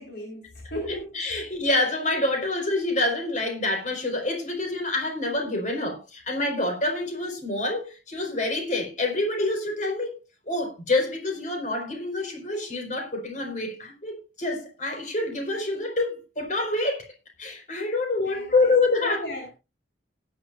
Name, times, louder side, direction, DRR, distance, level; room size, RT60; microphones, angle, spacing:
voice 1, 0.0-1.1 18.2-18.7 19.0-19.5, equal, 55° left, 4.5 m, -36 dB
voice 2, 0.9-10.2 10.5-17.1 17.4-19.3, left 2 dB, 40° left, 4.8 m, -27 dB
18.0 x 10.5 x 2.5 m
head